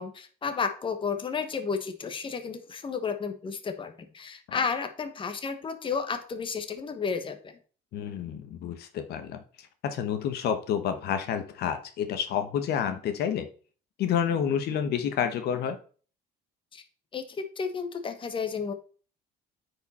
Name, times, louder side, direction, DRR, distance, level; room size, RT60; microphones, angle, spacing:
voice 1, 0.0-7.5 16.7-16.8 17.1-18.7, left 5 dB, 30° left, 8 dB, 1.1 m, -32 dB
voice 2, 7.9-9.4 9.8-13.5 14.0-15.8, left 8 dB, 70° left, 8 dB, 1.1 m, -29 dB
9.0 x 5.0 x 4.2 m, 0.40 s
cardioid pair, 110°, 17 cm